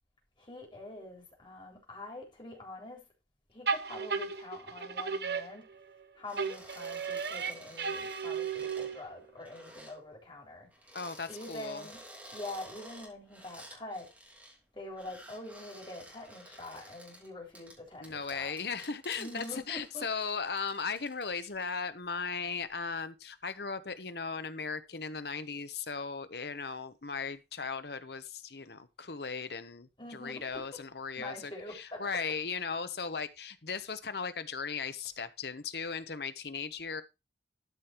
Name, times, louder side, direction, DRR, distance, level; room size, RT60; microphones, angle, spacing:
voice 1, 0.4-3.0 3.5-5.7 6.1-10.7 11.3-12.0 12.3-14.1 14.7-18.5 19.2-20.0 30.0-30.6 31.2-32.0, left 1 dB, 25° left, 3.8 m, -45 dB
sound 1, 3.7-6.0 6.4-9.2, right 5 dB, 60° right, 0.9 m, -35 dB
sound 2, 6.2-10.0 10.7-14.6 14.9-21.8 22.2-22.7, right 1 dB, 10° right, 3.1 m, -52 dB
voice 2, 10.9-11.8 18.0-37.0, left 5 dB, 60° left, 1.0 m, -37 dB
13.0 x 5.2 x 4.5 m
head